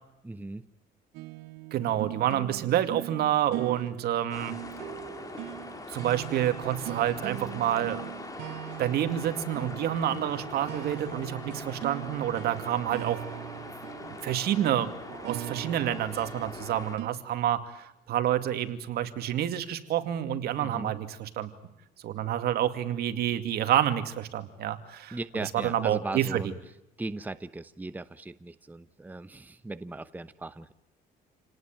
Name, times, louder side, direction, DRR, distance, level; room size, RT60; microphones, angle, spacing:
voice 1, 0.2-0.7 20.6-20.9 25.1-26.6 27.0-30.7, right 2 dB, 10° right, 12 dB, 1.0 m, -38 dB
sound 1, 1.1-17.1, right 17 dB, 90° right, 1.0 m, -40 dB
voice 2, 1.7-4.5 5.9-8.0 8.8-13.2 14.0-21.5 22.0-26.4, right 11 dB, 70° right, 9 dB, 2.4 m, -28 dB
sound 2, 4.3-17.0, left 2 dB, 20° left, 4.0 m, -42 dB
29.0 x 19.0 x 9.1 m, 0.86 s
cardioid pair, 110°, 17 cm